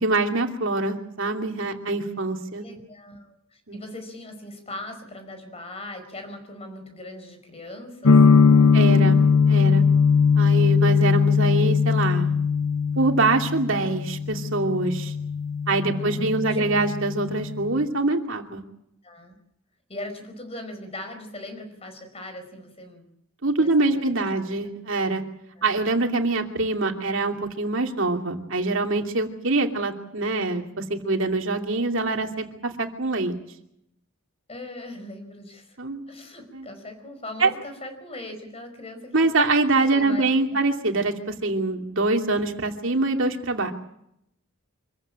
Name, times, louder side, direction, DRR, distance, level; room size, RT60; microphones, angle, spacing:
voice 1, 0.0-2.6 3.7-3.8 8.7-9.2 9.4-9.8 10.4-12.3 13.0-15.1 15.7-18.6 23.4-25.2 25.6-33.3 35.8-36.0 36.5-36.7 37.4-37.5 39.1-43.7, right 3 dB, 60° right, 3 dB, 2.8 m, -24 dB
voice 2, 2.5-8.3 8.6-8.8 15.8-16.8 19.0-19.3 19.9-23.1 23.6-24.4 25.6-25.7 34.5-35.8 36.1-39.3 39.7-40.6, left 1 dB, 30° left, 7 dB, 4.8 m, -40 dB
sound 1, 8.0-17.8, left 5 dB, 85° left, 0.9 m, -20 dB
25.5 x 15.0 x 8.8 m, 0.77 s
head